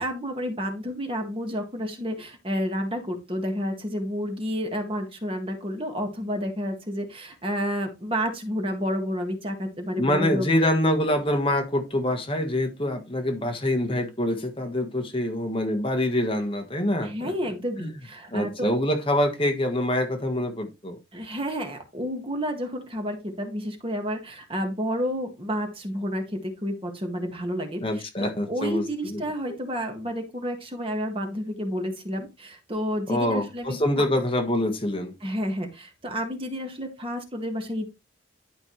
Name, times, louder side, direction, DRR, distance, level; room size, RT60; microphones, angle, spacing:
voice 1, 0.0-10.6 17.0-18.5 21.1-34.0 35.2-37.9, equal, 25° right, 1.8 m, -30 dB
voice 2, 10.0-17.3 17.8-18.0 18.3-21.0 27.8-29.2 33.1-35.2, left 1 dB, 25° left, 1.4 m, -25 dB
11.5 x 5.2 x 3.2 m
head